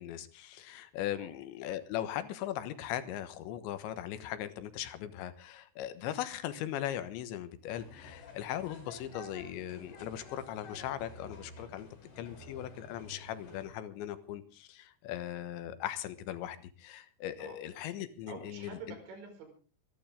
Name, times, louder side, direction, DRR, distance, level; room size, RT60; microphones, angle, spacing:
voice 1, 0.0-11.9 12.2-18.8, left 12 dB, 85° left, 12 dB, 3.6 m, -39 dB
sound 1, 7.7-13.7, left 2 dB, 65° left, 6.7 m, -51 dB
voice 2, 18.3-19.5, right 4 dB, 85° right, 4 dB, 7.1 m, -47 dB
25.5 x 11.5 x 3.7 m, 0.38 s
omnidirectional pair, 5.1 m